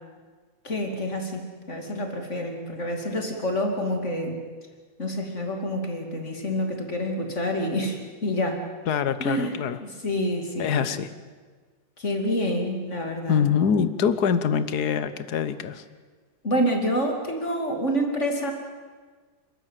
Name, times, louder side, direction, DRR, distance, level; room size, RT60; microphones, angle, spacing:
voice 1, 0.6-4.4 5.0-8.6 9.2-9.5 9.8-10.9 12.0-13.5 16.4-18.5, equal, 40° left, 3 dB, 3.0 m, -27 dB
voice 2, 8.9-9.8 10.6-11.1 13.3-15.8, left 7 dB, 60° left, 12 dB, 1.6 m, -24 dB
28.5 x 13.5 x 9.1 m, 1.5 s
omnidirectional pair, 2.0 m